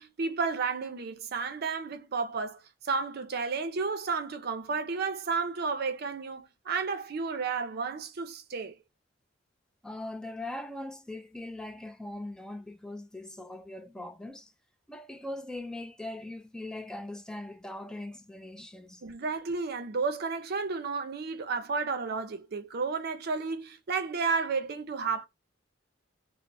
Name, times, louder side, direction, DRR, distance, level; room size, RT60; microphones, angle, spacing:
voice 1, 0.0-8.7 19.0-25.3, right 4 dB, 55° right, 0.5 m, -32 dB
voice 2, 9.8-14.5 14.9-19.0, left 1 dB, 5° left, 0.3 m, -40 dB
3.0 x 2.0 x 2.6 m
head